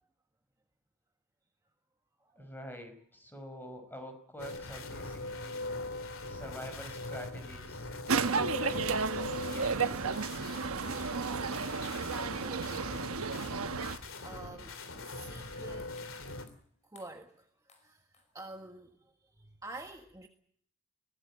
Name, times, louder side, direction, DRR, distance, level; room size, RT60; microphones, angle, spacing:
voice 1, 2.4-5.6 6.3-7.9 8.3-10.8, equal, 10° left, 5.3 m, -47 dB
sound 1, 4.4-16.4, left 2 dB, 65° left, 3.2 m, -42 dB
sound 2, 7.0-7.5 7.8-9.1 9.4-11.8 12.3-12.8 13.1-13.8 14.3-14.6 15.0-16.6 17.0-17.4 17.7-18.7, left 4 dB, 35° left, 5.6 m, -62 dB
sound 3, 8.1-14.0, right 5 dB, 80° right, 1.1 m, -32 dB
voice 2, 12.4-13.1 13.8-14.8 15.1-16.1 16.8-20.3, right 2 dB, 15° right, 1.5 m, -49 dB
23.0 x 17.5 x 8.7 m
head